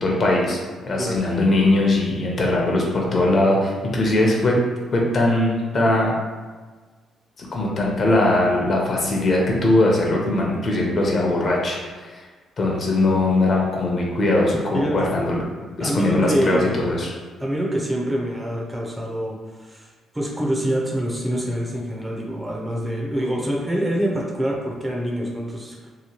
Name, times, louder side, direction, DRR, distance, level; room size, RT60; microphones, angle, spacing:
voice 1, 0.0-4.6 4.9-6.1 7.4-12.1 12.6-15.4 15.8-17.1, left 2 dB, 45° left, -2 dB, 0.7 m, -20 dB
voice 2, 15.8-17.0 17.4-19.9 20.1-25.9, equal, 10° right, -2 dB, 0.5 m, -25 dB
2.9 x 2.1 x 2.9 m, 1.4 s
cardioid pair, 90°, 0 cm